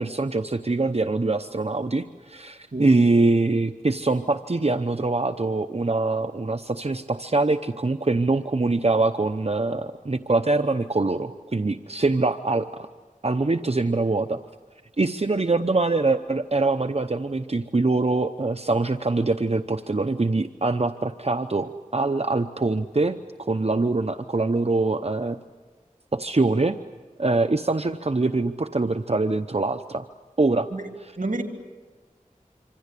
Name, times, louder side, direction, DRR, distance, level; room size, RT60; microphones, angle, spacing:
voice 1, 0.0-12.9 13.2-14.4 15.0-25.4 26.1-26.8 27.2-30.1 30.4-30.7, right 3 dB, 50° right, 8 dB, 0.8 m, -24 dB
voice 2, 2.7-2.9 30.7-30.9 31.2-31.4, right 2 dB, 75° right, 4 dB, 2.7 m, -29 dB
26.5 x 26.0 x 8.3 m, 1.3 s
wide cardioid pair, 45°, 14 cm